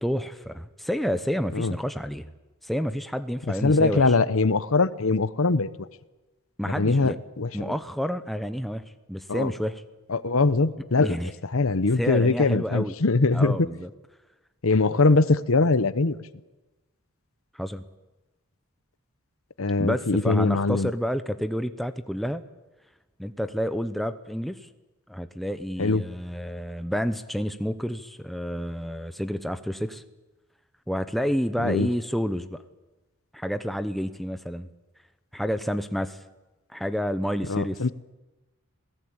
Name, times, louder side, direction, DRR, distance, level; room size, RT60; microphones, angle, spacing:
voice 1, 0.0-2.3 2.6-4.1 6.6-7.2 7.5-8.8 9.1-9.8 11.0-11.3 12.0-13.0 13.3-13.9 17.5-17.8 19.8-22.4 23.2-24.7 25.1-30.0 30.9-32.6 33.3-34.7 35.3-36.2 36.7-37.9, equal, ahead, 10 dB, 0.8 m, -29 dB
voice 2, 3.6-5.9 6.6-7.7 9.3-9.5 10.1-11.2 11.4-13.7 14.6-16.2 19.6-20.9 25.8-26.0 31.6-31.9 37.5-37.9, left 3 dB, 70° left, 16 dB, 0.9 m, -22 dB
27.0 x 18.0 x 8.8 m, 1.1 s
head